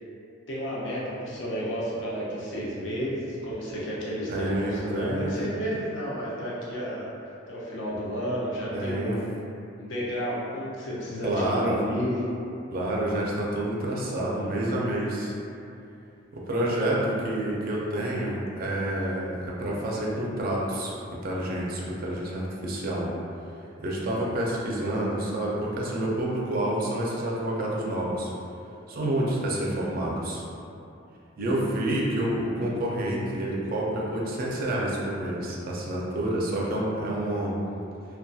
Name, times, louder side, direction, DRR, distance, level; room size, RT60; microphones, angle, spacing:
voice 1, 0.5-7.1 7.5-9.3 9.8-12.1, equal, 70° left, -7 dB, 0.5 m, -32 dB
voice 2, 4.3-5.3 8.7-9.2 11.2-11.8 12.7-15.3 16.3-20.9 21.2-23.1 23.8-28.3 28.9-30.4 31.4-37.6, right 1 dB, 50° right, -4 dB, 0.4 m, -28 dB
2.6 x 2.2 x 2.2 m, 2.6 s
head